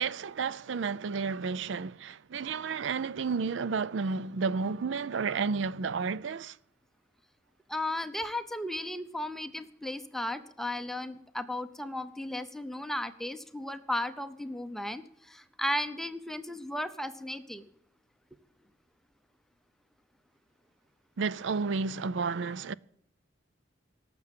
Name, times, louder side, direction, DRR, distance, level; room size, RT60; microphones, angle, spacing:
voice 1, 0.0-6.5 21.2-22.7, right 5 dB, 70° right, 0.4 m, -31 dB
voice 2, 7.7-17.7, left 1 dB, ahead, 0.7 m, -35 dB
18.5 x 7.5 x 7.5 m
head